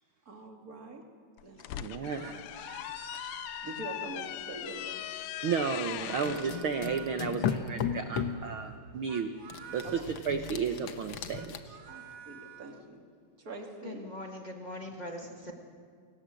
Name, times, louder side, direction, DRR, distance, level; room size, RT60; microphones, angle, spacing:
voice 1, 0.3-1.0 1.4-1.6 1.9-2.3 3.6-5.0 6.2-6.3 9.8-10.0 11.9-13.0 13.4-14.0, right 2 dB, 30° right, 2 dB, 2.5 m, -44 dB
sound 1, 1.4-6.5, left 13 dB, 85° left, 2.3 m, -40 dB
voice 2, 1.8-2.4 5.4-9.3 9.7-11.8, right 6 dB, 75° right, 7 dB, 1.2 m, -33 dB
sound 2, 2.0-4.5 5.3-7.4 8.9-10.1 11.1-12.8, right 8 dB, 60° right, 2.4 m, -49 dB
sound 3, 6.2-8.5 9.5-11.6, left 7 dB, 65° left, 1.2 m, -35 dB
voice 3, 13.8-15.5, left 1 dB, 25° left, 1 dB, 0.9 m, -41 dB
28.5 x 18.5 x 7.7 m, 2.2 s
omnidirectional pair, 3.7 m